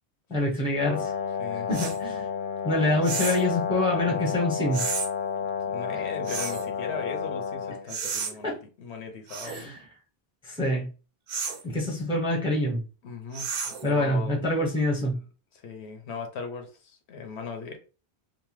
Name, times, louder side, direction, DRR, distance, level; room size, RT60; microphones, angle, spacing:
voice 1, 0.3-1.1 1.7-2.3 2.6-4.9 8.4-8.6 9.4-9.8 10.4-10.9 11.6-12.8 13.8-15.2, left 1 dB, 5° right, -2 dB, 0.5 m, -26 dB
Brass instrument, 0.8-7.8, left 7 dB, 55° left, 0.6 m, -31 dB
voice 2, 1.4-1.7 4.0-4.3 5.7-9.7 13.0-13.5 13.8-14.4 15.5-17.8, left 5 dB, 80° left, 6 dB, 0.9 m, -38 dB
sound 1, 1.7-2.0 3.0-3.5 4.7-5.1 6.3-6.7 7.9-8.3 9.3-9.6 11.3-11.6 13.3-13.9, right 6 dB, 60° right, 0.7 m, -32 dB
2.8 x 2.1 x 3.0 m, 0.34 s
omnidirectional pair, 1.1 m